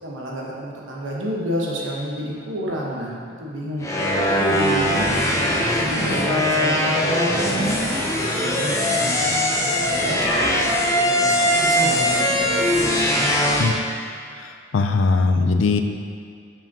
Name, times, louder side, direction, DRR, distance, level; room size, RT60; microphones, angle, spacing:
voice 1, 0.0-3.9 4.2-5.1 5.8-7.8 8.0-10.2 10.9-13.7, equal, 90° right, -3 dB, 1.1 m, -30 dB
sound 1, 3.8-13.7, left 1 dB, 15° left, 0.7 m, -21 dB
voice 2, 14.7-15.8, left 4 dB, 85° left, 7 dB, 0.4 m, -19 dB
6.9 x 5.6 x 2.8 m, 2.2 s
head